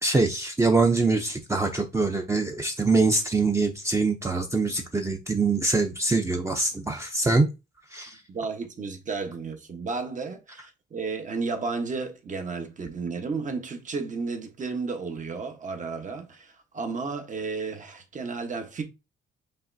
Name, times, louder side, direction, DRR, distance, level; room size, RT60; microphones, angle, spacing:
voice 1, 0.0-7.5 7.9-8.2, right 3 dB, 15° right, 0.7 m, -24 dB
voice 2, 8.3-18.8, right 4 dB, 40° right, 1.1 m, -33 dB
5.4 x 3.1 x 2.7 m
cardioid pair, 90°, 20 cm